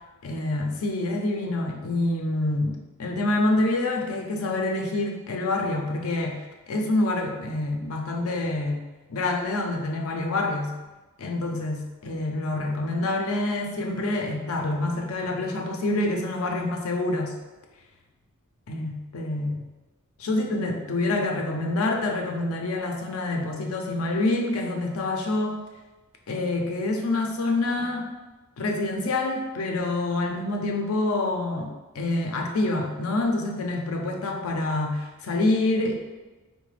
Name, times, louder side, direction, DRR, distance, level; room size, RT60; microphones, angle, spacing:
voice 1, 0.2-8.8 9.1-10.8 11.2-17.3 18.7-19.7 20.2-25.6 26.3-28.1 28.6-35.9, left 2 dB, 75° left, 2 dB, 0.5 m, -27 dB
3.8 x 2.1 x 3.2 m, 1.2 s
head